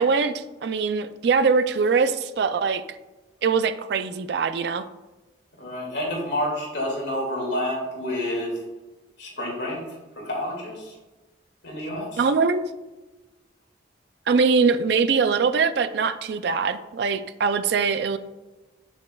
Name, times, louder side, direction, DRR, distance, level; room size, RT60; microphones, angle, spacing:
voice 1, 0.0-2.8 3.4-4.8 12.2-12.7 14.3-18.2, right 5 dB, 60° right, 11 dB, 0.3 m, -22 dB
voice 2, 5.6-8.6 9.2-9.8 10.2-11.0 11.6-12.3, left 1 dB, 65° left, -2 dB, 2.2 m, -29 dB
7.1 x 6.3 x 2.3 m, 1.1 s
head